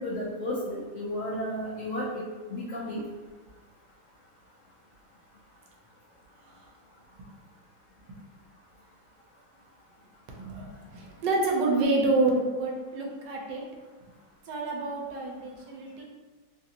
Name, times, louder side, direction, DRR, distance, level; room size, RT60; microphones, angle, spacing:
voice 1, 0.0-2.1 2.5-3.0, left 1 dB, 75° left, -6 dB, 0.7 m, -33 dB
voice 2, 10.4-13.6 14.5-16.0, right 2 dB, 75° right, -1 dB, 1.2 m, -28 dB
3.2 x 2.4 x 2.7 m, 1.3 s
omnidirectional pair, 2.0 m